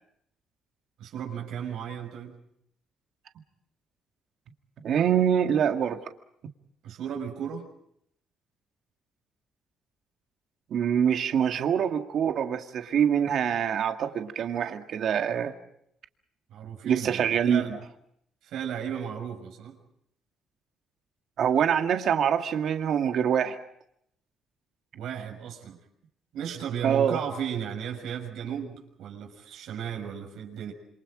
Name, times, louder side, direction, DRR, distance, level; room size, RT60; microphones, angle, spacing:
voice 1, 1.0-2.3 6.8-7.7 16.5-17.7 18.4-19.8 24.9-25.8 26.3-30.7, right 8 dB, 80° right, 3 dB, 6.3 m, -35 dB
voice 2, 4.8-6.1 10.7-15.5 16.8-17.6 21.4-23.6 26.8-27.2, right 8 dB, 60° right, 5 dB, 2.0 m, -25 dB
27.5 x 27.0 x 5.0 m, 0.72 s
cardioid pair, 135°, 0 cm